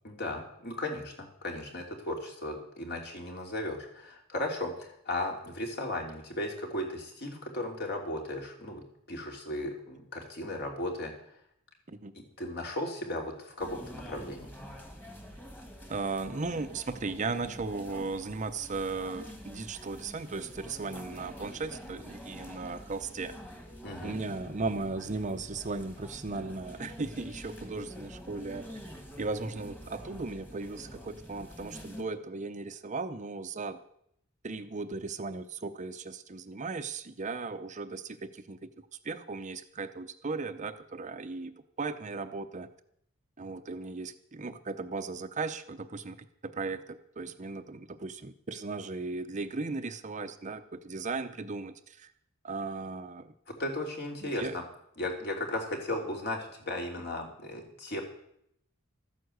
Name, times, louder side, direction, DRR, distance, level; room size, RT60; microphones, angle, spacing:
voice 1, 0.0-11.1 12.1-14.5 23.8-24.2 53.5-54.6 55.0-58.0, left 1 dB, 50° left, 1 dB, 3.1 m, -36 dB
in the cinema, 13.6-32.0, equal, 10° left, 1.9 m, -46 dB
voice 2, 15.9-23.4 24.0-28.7 29.2-33.8 34.4-38.7 39.0-42.7 43.4-52.1 52.4-53.3 54.2-54.6, right 3 dB, 35° right, 9 dB, 0.7 m, -37 dB
13.5 x 9.5 x 7.9 m, 0.72 s
head